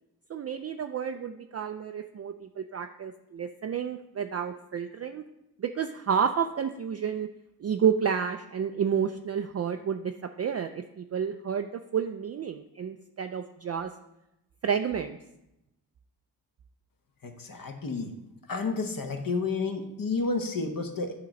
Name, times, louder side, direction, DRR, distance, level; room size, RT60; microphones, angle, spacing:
voice 1, 0.3-5.2 5.6-7.3 7.6-10.1 10.4-13.9 14.6-15.2, right 7 dB, 40° right, 6 dB, 0.4 m, -30 dB
voice 2, 17.2-18.1 18.5-21.1, left 4 dB, 50° left, 5 dB, 1.0 m, -31 dB
8.5 x 3.0 x 5.1 m, 0.88 s
cardioid pair, 55°, 43 cm